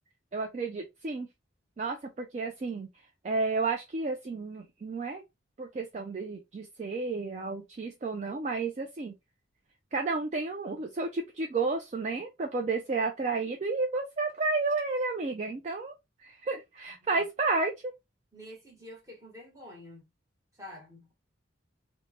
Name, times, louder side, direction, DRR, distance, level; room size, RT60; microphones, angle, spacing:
voice 1, 0.3-1.3 1.8-2.9 3.2-5.2 5.6-9.1 9.9-15.9 16.2-17.9, right 3 dB, 35° right, 0.3 m, -31 dB
voice 2, 18.3-20.0 20.6-21.1, left 1 dB, 15° right, 1.1 m, -48 dB
3.2 x 2.1 x 2.7 m
head